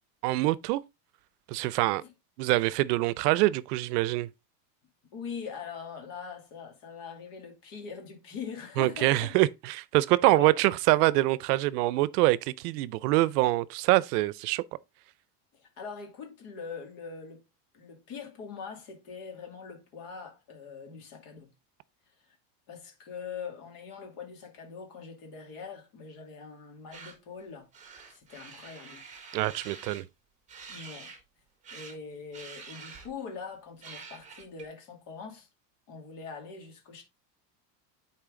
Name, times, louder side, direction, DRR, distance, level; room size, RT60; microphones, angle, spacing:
voice 1, 0.2-0.8 1.5-2.0 2.4-4.3 8.8-14.6 29.3-30.1, right 18 dB, 75° right, 0.7 m, -25 dB
voice 2, 5.1-9.4 10.3-10.5 15.5-17.4 17.7-21.5 22.2-22.4 22.7-27.7 28.1-29.0 30.7-31.1 31.7-35.5 35.9-37.0, left 6 dB, 45° left, 2.5 m, -42 dB
sound 1, 26.9-27.1 27.7-30.0 30.5-31.2 31.6-32.0 32.3-33.2 33.8-34.7, right 5 dB, 15° right, 1.6 m, -47 dB
9.0 x 4.5 x 3.8 m
cardioid pair, 175°, 47 cm